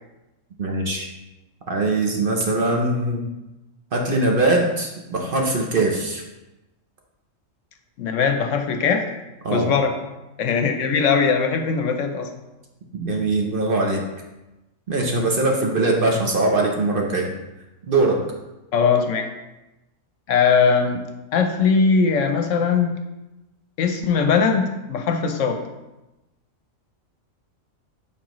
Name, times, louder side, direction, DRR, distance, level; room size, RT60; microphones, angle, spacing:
voice 1, 0.6-1.1 1.7-3.2 3.9-6.2 9.4-9.7 12.9-14.0 14.9-17.3 17.8-18.2, right 2 dB, 45° right, 1 dB, 0.9 m, -21 dB
voice 2, 8.0-9.0 9.5-9.9 10.4-12.3 18.7-19.3 20.3-21.0 21.3-23.0 23.8-25.6, left 5 dB, 70° left, 6 dB, 1.0 m, -20 dB
7.3 x 5.0 x 3.0 m, 1.0 s
omnidirectional pair, 1.4 m